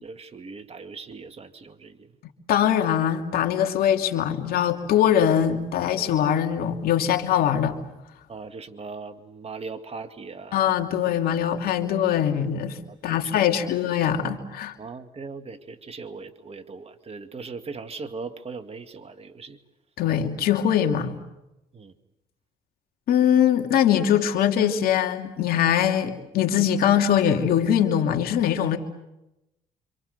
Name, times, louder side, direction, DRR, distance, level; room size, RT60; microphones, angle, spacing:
voice 1, 0.0-2.1 8.3-10.6 11.8-11.9 12.9-13.7 14.8-19.6 21.7-21.9, right 4 dB, 40° right, 9 dB, 2.3 m, -39 dB
voice 2, 2.5-7.8 10.5-12.8 13.0-14.7 20.0-21.1 23.1-28.8, left 9 dB, 70° left, 5 dB, 2.7 m, -22 dB
28.0 x 26.0 x 6.8 m, 0.91 s
supercardioid pair, 70°, 16 cm